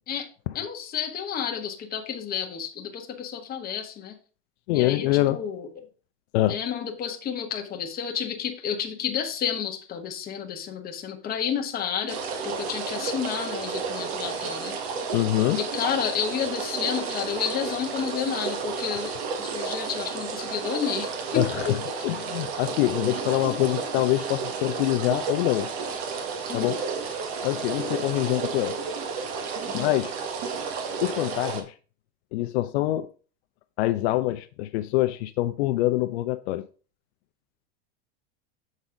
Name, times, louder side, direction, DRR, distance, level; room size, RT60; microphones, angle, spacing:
voice 1, 0.5-4.1 4.7-5.7 6.5-14.8 15.6-22.0 26.5-26.7 29.7-29.9, left 8 dB, 30° left, 1.2 m, -31 dB
voice 2, 4.7-5.4 6.3-6.6 15.1-15.6 21.3-25.7 26.5-27.1 27.4-28.8 29.7-30.2 31.0-31.7 32.3-33.1 33.8-36.6, left 16 dB, 75° left, 0.6 m, -25 dB
sound 1, 12.1-31.6, right 5 dB, 65° right, 1.6 m, -32 dB
7.2 x 4.1 x 5.0 m
supercardioid pair, 145°, 33 cm